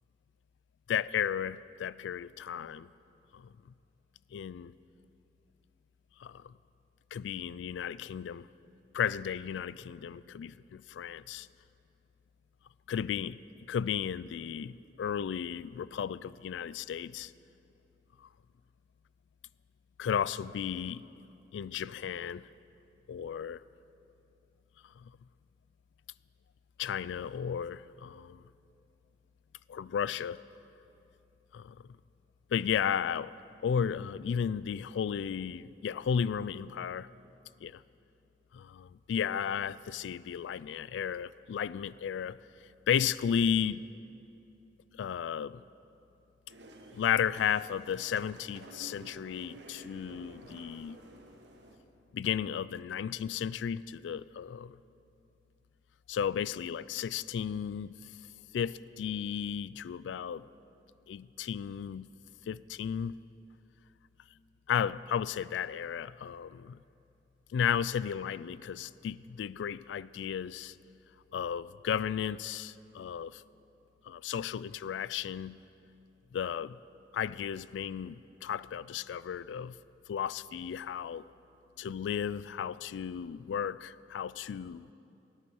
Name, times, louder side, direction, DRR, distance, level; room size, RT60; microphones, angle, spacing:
voice 1, 0.9-2.9 3.3-3.5 4.3-4.7 6.2-6.5 7.1-8.5 8.9-11.5 12.9-13.4 13.7-17.3 20.0-21.0 21.5-22.5 23.1-23.6 25.0-25.1 26.8-28.4 29.7-30.4 31.5-31.8 32.5-33.3 33.6-37.1 37.6-37.8 38.5-42.4 42.9-43.8 45.0-45.6 46.9-51.0 52.1-54.8 56.1-58.0 58.5-60.4 61.1-62.1 62.5-63.2 64.7-66.8 67.5-70.8 71.3-73.4 74.0-75.6 76.3-76.8 77.1-79.8 80.1-81.2 81.8-84.9, left 8 dB, 85° left, 18 dB, 0.3 m, -34 dB
sound 1, 46.5-51.8, right 1 dB, 70° right, 1.2 m, -52 dB
18.0 x 10.0 x 4.6 m, 2.7 s
head